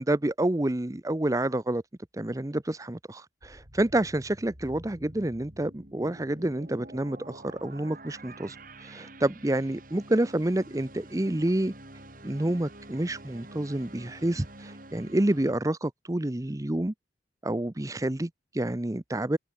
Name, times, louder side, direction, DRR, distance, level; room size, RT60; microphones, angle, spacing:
voice 1, 0.0-1.8 2.1-11.7 12.2-16.9 17.4-19.4, right 1 dB, 20° right, 0.7 m, -28 dB
sound 1, 3.4-15.5, right 1 dB, 50° right, 7.8 m, -48 dB
open air
head